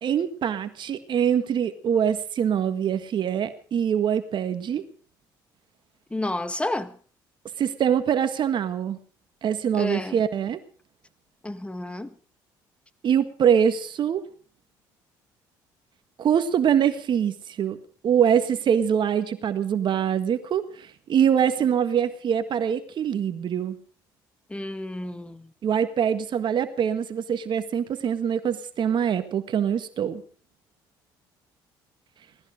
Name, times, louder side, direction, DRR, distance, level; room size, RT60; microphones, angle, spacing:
voice 1, 0.0-4.8 7.6-9.0 9.4-10.6 13.0-14.2 16.2-17.8 18.0-23.8 25.6-30.2, right 8 dB, 55° right, 1.7 m, -24 dB
voice 2, 6.1-6.9 9.7-10.2 11.4-12.1 24.5-25.5, left 1 dB, 10° left, 1.7 m, -30 dB
19.0 x 14.0 x 5.2 m
supercardioid pair, 75°, 10 cm